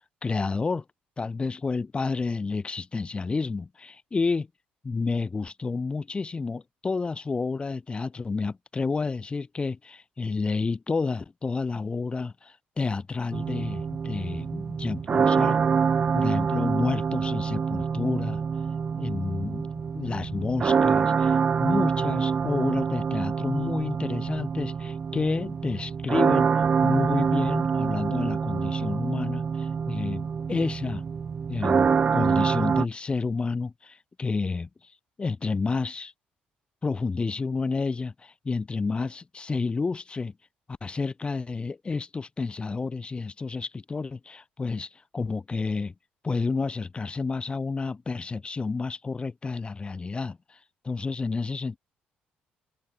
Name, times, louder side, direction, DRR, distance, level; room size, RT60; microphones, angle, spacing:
voice 1, 0.2-0.8 1.2-4.5 4.8-15.6 16.1-18.4 19.0-19.7 19.9-26.5 26.8-31.0 31.5-34.7 35.2-36.1 36.8-40.3 40.8-45.9 46.2-50.6 50.8-51.8, left 4 dB, 30° left, 1.5 m, -30 dB
sound 1, 13.3-32.8, right 6 dB, 35° right, 0.4 m, -26 dB
open air
supercardioid pair, 80°, 4 cm